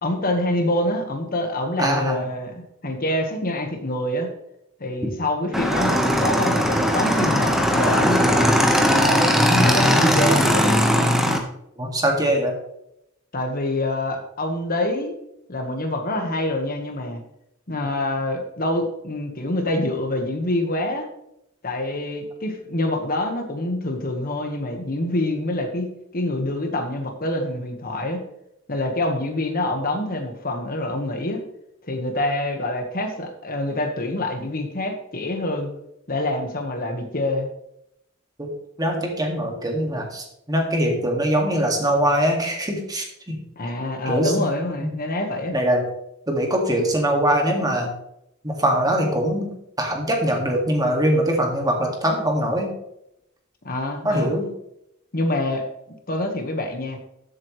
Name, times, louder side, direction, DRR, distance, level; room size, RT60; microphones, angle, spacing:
voice 1, 0.0-4.3 4.8-8.5 9.0-10.6 13.3-15.2 15.5-17.2 17.7-21.1 21.6-28.2 28.7-31.4 31.8-35.7 36.1-37.5 43.6-45.5 53.6-54.3 55.1-55.7 56.1-57.0, left 1 dB, 45° left, 4 dB, 1.4 m, -26 dB
voice 2, 1.8-2.2 11.8-12.5 38.4-38.5 38.8-43.4 44.1-44.3 45.5-45.8 46.3-47.9 48.4-49.5 49.8-52.7 54.0-54.5, right 1 dB, 20° right, 2 dB, 2.0 m, -22 dB
Motorcycle / Engine, 5.5-11.4, equal, ahead, 1.3 m, -19 dB
14.0 x 7.9 x 3.2 m, 0.80 s
head